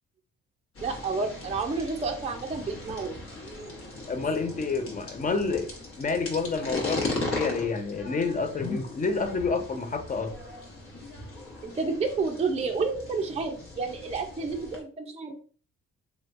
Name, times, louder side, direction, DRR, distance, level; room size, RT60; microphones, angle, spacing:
sound 1, 0.7-14.8, left 2 dB, 45° left, 1.0 m, -38 dB
voice 1, 0.8-3.2 11.6-15.4, right 4 dB, 20° right, 0.5 m, -30 dB
voice 2, 4.1-5.7 6.0-10.3, left 4 dB, 25° left, 0.6 m, -29 dB
3.2 x 2.9 x 2.5 m
cardioid pair, 90°, 30 cm